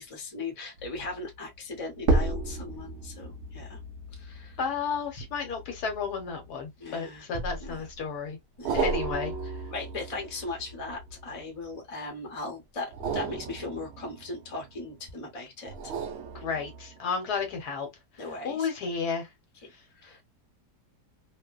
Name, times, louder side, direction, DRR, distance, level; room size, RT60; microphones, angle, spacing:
voice 1, 0.0-3.8 4.1-4.6 6.8-7.2 7.6-7.9 8.6-8.8 9.7-15.9 18.2-18.7 20.0-20.2, left 3 dB, 25° left, 0.7 m, -38 dB
sound 1, 0.8-1.1 2.0-6.6 7.3-8.0 8.6-11.6 12.8-14.9 15.7-17.1 17.6-17.7, right 3 dB, 65° right, 0.6 m, -33 dB
voice 2, 4.6-8.4 8.7-9.3 16.3-17.9 18.4-19.3, left 5 dB, 70° left, 1.4 m, -32 dB
2.9 x 2.1 x 2.2 m
omnidirectional pair, 1.8 m